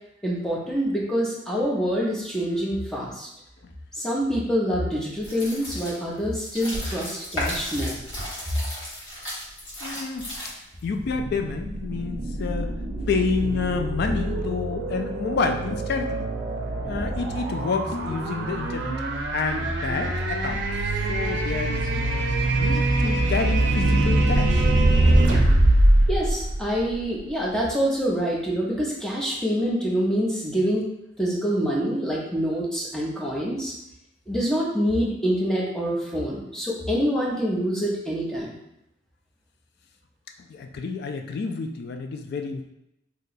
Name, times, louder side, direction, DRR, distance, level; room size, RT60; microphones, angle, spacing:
voice 1, 0.2-3.3 4.0-8.0 26.1-30.9 31.2-33.7 34.3-38.6, equal, 5° left, -4 dB, 0.6 m, -26 dB
sound 1, 5.2-10.8, left 1 dB, 80° left, 1.4 m, -34 dB
voice 2, 9.8-10.3 10.6-12.8 13.1-16.3 16.8-18.9 19.3-20.6 21.1-22.3 22.6-24.7 40.5-42.7, left 4 dB, 55° left, 5 dB, 0.3 m, -29 dB
sound 2, 11.0-27.2, right 1 dB, 70° right, 0.5 m, -23 dB
2.8 x 2.2 x 3.9 m, 0.82 s
head